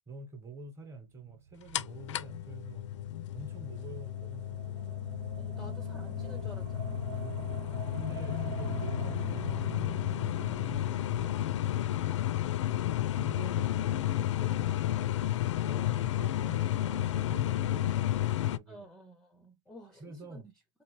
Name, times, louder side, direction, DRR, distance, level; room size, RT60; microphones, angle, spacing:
voice 1, 0.1-2.8 3.3-5.3 7.2-7.5 7.9-9.8 10.2-12.0 13.1-15.4 15.6-18.9 20.0-20.5, right 2 dB, 15° right, 1.0 m, -47 dB
sound 1, 1.1-13.3, right 8 dB, 85° right, 0.5 m, -45 dB
sound 2, 1.7-18.6, left 13 dB, 75° left, 0.4 m, -32 dB
voice 2, 5.4-7.2 15.6-16.0 18.7-20.4, equal, 5° left, 0.5 m, -52 dB
3.8 x 2.9 x 3.1 m
hypercardioid pair, 140°, 16 cm